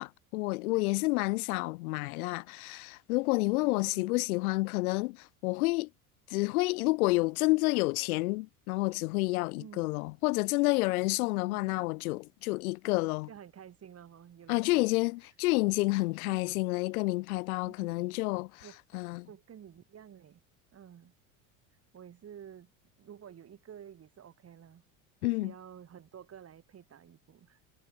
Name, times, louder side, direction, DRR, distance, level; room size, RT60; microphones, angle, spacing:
voice 1, 0.0-5.9 6.3-13.3 14.5-18.6 18.9-19.3 25.2-25.5, left 22 dB, 80° left, 0.7 m, -29 dB
voice 2, 3.6-4.2 9.6-9.8 11.4-11.8 13.3-14.9 16.2-16.6 17.6-18.2 18.6-18.8 19.3-20.4 20.7-21.1 21.9-22.7 23.0-24.8 25.2-27.6, right 9 dB, 35° right, 3.6 m, -51 dB
hypercardioid pair, 95°, 43 cm